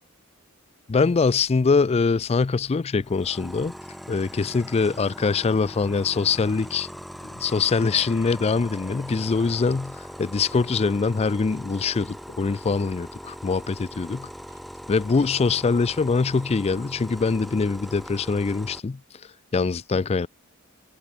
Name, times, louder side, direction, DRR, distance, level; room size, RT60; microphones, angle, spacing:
voice 1, 0.9-3.7 4.1-6.9 7.2-14.3 14.9-19.0 19.5-20.3, left 4 dB, 30° left, 0.4 m, -23 dB
sound 1, 3.0-18.8, equal, ahead, 1.1 m, -40 dB
Clock, 6.5-6.6 7.5-7.6 8.5-8.6 9.5-9.6 10.5-10.6 11.5-11.7 12.5-12.6 13.5-13.6 14.5-14.7 15.5-15.6 16.5-16.6, right 6 dB, 50° right, 5.9 m, -59 dB
head